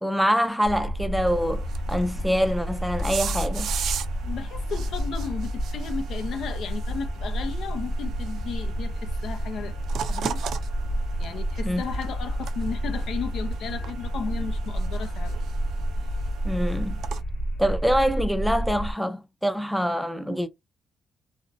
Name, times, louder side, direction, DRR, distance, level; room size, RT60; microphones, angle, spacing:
voice 1, 0.0-3.7 11.6-11.8 16.4-17.0 17.6-20.5, equal, ahead, 0.4 m, -25 dB
sound 1, 0.6-18.9, equal, 90° left, 1.0 m, -30 dB
sound 2, 1.3-17.2, right 8 dB, 75° right, 0.3 m, -39 dB
voice 2, 4.2-9.8 10.1-10.4 11.2-15.4, left 6 dB, 75° left, 0.5 m, -34 dB
2.5 x 2.1 x 2.5 m
cardioid pair, 105°, 0 cm